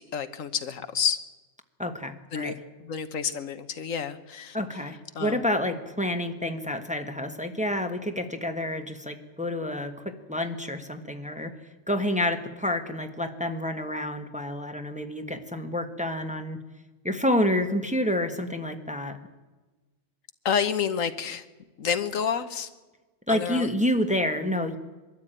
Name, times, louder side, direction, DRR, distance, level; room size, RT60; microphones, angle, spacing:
voice 1, 0.1-1.2 2.3-4.6 5.1-5.4 20.4-21.4 21.8-22.7 23.3-23.7, left 7 dB, 80° left, 11 dB, 1.5 m, -29 dB
voice 2, 1.8-2.5 4.5-11.5 11.9-16.6 17.0-19.2 23.3-24.8, left 1 dB, 5° right, 6 dB, 1.3 m, -28 dB
23.0 x 13.5 x 9.0 m, 1.2 s
omnidirectional pair, 1.4 m